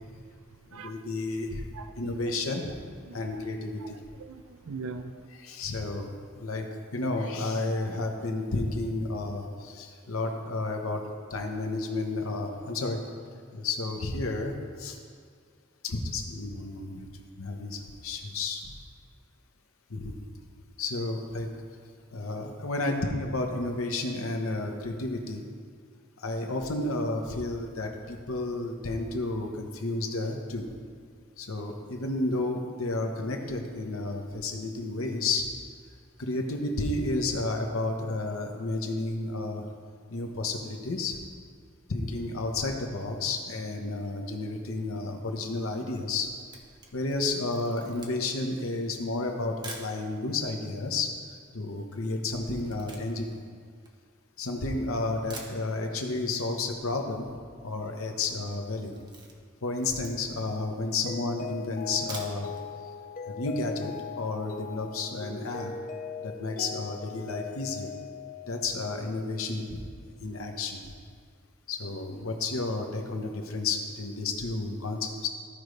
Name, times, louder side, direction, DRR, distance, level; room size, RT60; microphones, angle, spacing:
voice 1, 0.7-1.6 1.9-2.7 3.1-3.9 5.3-6.1 6.4-6.7 6.9-11.0 11.3-13.0 13.5-14.5 14.8-15.0 15.8-17.1 17.4-18.7 19.9-20.2 20.8-21.5 22.1-25.4 26.2-30.7 31.4-35.5 36.2-39.6 40.1-41.2 41.9-46.3 46.9-51.1 51.5-53.4 54.4-57.3 57.6-58.9 59.6-62.5 63.3-65.7 66.2-67.9 68.5-70.8 71.7-75.3, left 2 dB, 80° left, 3 dB, 1.0 m, -31 dB
voice 2, 1.7-2.3 3.1-3.2 3.8-3.9 4.2-5.2, right 4 dB, 80° right, 9 dB, 0.4 m, -40 dB
Camera, 46.3-50.0 50.7-50.8 50.9-54.6 55.0-55.1 55.3-56.1 56.4-56.5 56.8-56.9 57.1-57.5 57.8-58.1 58.4-60.5 61.0-61.1 61.9-62.7 63.0-63.1 63.5-63.6, right 2 dB, 20° right, 0.9 m, -47 dB
Mallet percussion, 61.1-69.2, left 7 dB, 40° left, 0.4 m, -40 dB
14.5 x 5.1 x 3.3 m, 2.1 s
head